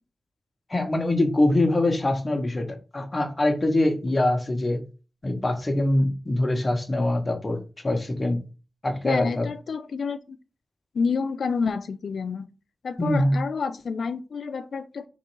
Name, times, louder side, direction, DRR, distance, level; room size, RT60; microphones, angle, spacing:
voice 1, 0.7-4.8 5.2-8.4 8.8-9.5 13.0-13.4, left 1 dB, 25° left, 0.8 m, -24 dB
voice 2, 9.0-10.4 10.9-12.5 12.8-15.1, left 5 dB, 90° left, 0.4 m, -29 dB
3.7 x 3.0 x 4.5 m
wide cardioid pair, 150°, 0 cm